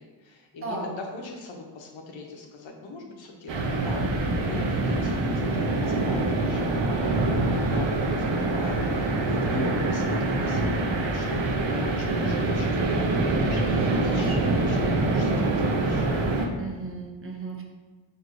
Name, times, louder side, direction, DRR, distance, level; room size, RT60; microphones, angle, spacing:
voice 1, 0.0-16.1, left 3 dB, 90° left, 1 dB, 0.7 m, -41 dB
sound 1, 3.5-16.5, right 2 dB, 75° right, 0.6 m, -25 dB
voice 2, 9.5-9.9 11.7-12.0 14.1-14.5 16.5-17.6, right 2 dB, 30° right, 0 dB, 0.6 m, -35 dB
4.4 x 2.6 x 2.5 m, 1.4 s
wide cardioid pair, 95°, 44 cm